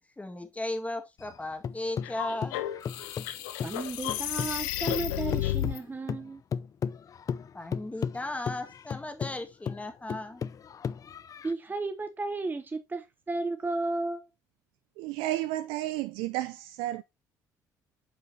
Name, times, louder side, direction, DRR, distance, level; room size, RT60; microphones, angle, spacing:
voice 1, 0.2-2.6 7.5-10.4, left 2 dB, 15° left, 1.7 m, -36 dB
sound 1, 1.2-4.6 4.9-11.5, left 7 dB, 40° left, 0.5 m, -36 dB
sound 2, 2.0-5.8, left 13 dB, 80° left, 0.6 m, -32 dB
voice 2, 3.6-6.4 11.4-14.3, right 3 dB, 20° right, 0.9 m, -33 dB
voice 3, 15.0-17.0, right 15 dB, 75° right, 0.4 m, -32 dB
8.0 x 5.6 x 2.7 m
hypercardioid pair, 60°, 9 cm